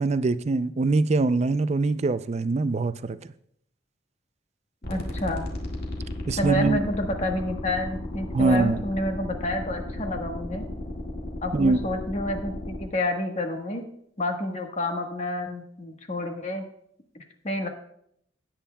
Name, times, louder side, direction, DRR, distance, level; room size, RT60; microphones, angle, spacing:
voice 1, 0.0-3.2 6.3-6.8 8.3-8.8 11.5-11.8, right 3 dB, 35° right, 13 dB, 0.4 m, -23 dB
sound 1, 4.8-12.8, left 1 dB, 55° left, 1.9 m, -34 dB
voice 2, 4.9-5.5 6.4-10.6 11.4-13.8 14.2-16.6 17.1-17.7, left 1 dB, 35° left, 3 dB, 1.4 m, -29 dB
17.0 x 8.8 x 2.3 m, 0.70 s
head